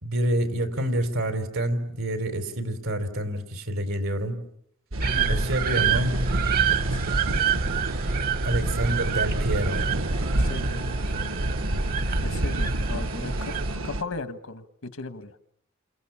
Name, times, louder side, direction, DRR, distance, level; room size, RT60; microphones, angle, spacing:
voice 1, 0.0-4.4 5.3-6.2 8.4-10.0, right 1 dB, 85° right, 8 dB, 4.0 m, -27 dB
sound 1, 4.9-14.0, right 1 dB, 70° right, 1.2 m, -30 dB
sound 2, 5.0-13.8, right 5 dB, 45° right, 1.0 m, -27 dB
voice 2, 10.3-11.0 12.2-13.5 13.8-15.3, left 3 dB, 85° left, 10 dB, 1.6 m, -37 dB
30.0 x 27.5 x 7.2 m, 0.74 s
head